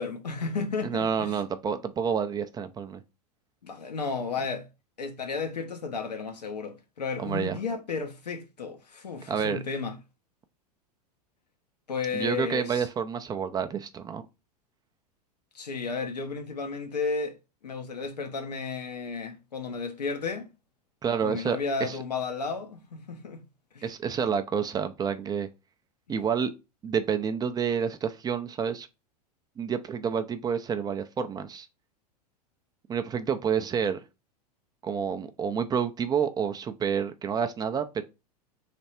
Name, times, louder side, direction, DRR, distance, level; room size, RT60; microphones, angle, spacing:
voice 1, 0.0-1.4 3.6-4.7 5.0-10.0 11.9-12.9 15.5-17.4 17.6-20.5 21.2-23.4 23.7-23.9, left 4 dB, 85° left, 0.9 m, -33 dB
voice 2, 0.8-3.0 7.2-7.6 9.3-9.6 12.1-14.2 21.0-22.0 23.8-25.5 26.1-26.5 26.8-28.9 29.6-31.7 32.9-34.0 34.8-38.0, right 7 dB, 20° right, 0.5 m, -29 dB
3.3 x 3.1 x 4.2 m
hypercardioid pair, 95°, 20 cm